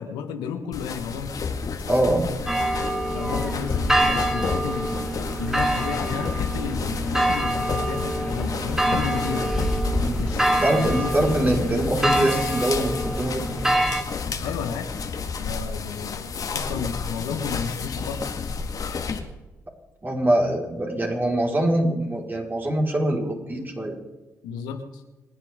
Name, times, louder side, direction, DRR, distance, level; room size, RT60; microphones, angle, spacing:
voice 1, 0.0-1.4 3.1-5.0 5.4-9.7 10.2-11.6 14.4-14.9 15.4-18.2 24.4-25.0, left 6 dB, 80° left, 6 dB, 1.5 m, -32 dB
sound 1, 0.7-19.2, left 5 dB, 55° left, 2.0 m, -31 dB
voice 2, 1.9-2.3 10.0-10.2 10.5-13.5 20.0-24.0, right 1 dB, 25° right, -1 dB, 4.8 m, -23 dB
sound 2, 2.5-14.0, right 1 dB, 5° right, 2.0 m, -25 dB
27.0 x 10.0 x 3.8 m, 1.1 s
hypercardioid pair, 45°, 7 cm